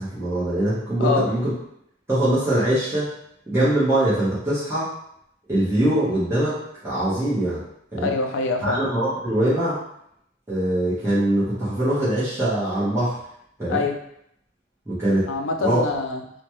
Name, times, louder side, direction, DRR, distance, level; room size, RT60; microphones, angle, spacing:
voice 1, 0.0-1.5 2.1-3.1 3.5-4.9 5.5-7.6 7.9-8.1 8.6-9.8 10.5-13.1 13.6-13.8 14.9-15.3 15.6-15.8, right 1 dB, 15° right, -11 dB, 0.9 m, -22 dB
voice 2, 8.0-8.8 13.7-13.9 15.3-16.2, left 4 dB, 80° left, 3 dB, 0.4 m, -24 dB
3.0 x 2.2 x 3.0 m, 0.73 s
head